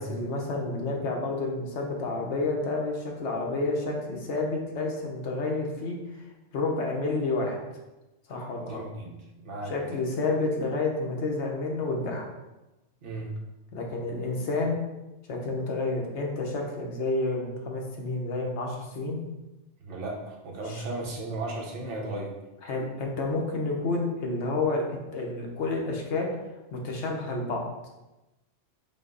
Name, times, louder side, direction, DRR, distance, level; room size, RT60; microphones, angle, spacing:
voice 1, 0.0-6.0 6.5-7.6 8.3-8.8 9.7-12.3 13.7-14.8 15.3-19.2 20.7-20.8 22.6-26.3 26.7-27.7, left 3 dB, 70° left, 0 dB, 1.1 m, -30 dB
voice 2, 8.6-9.1 9.4-9.7 13.0-13.3 19.8-22.4, right 2 dB, 80° right, -2 dB, 1.2 m, -35 dB
5.4 x 2.0 x 3.8 m, 1.0 s
omnidirectional pair, 1.2 m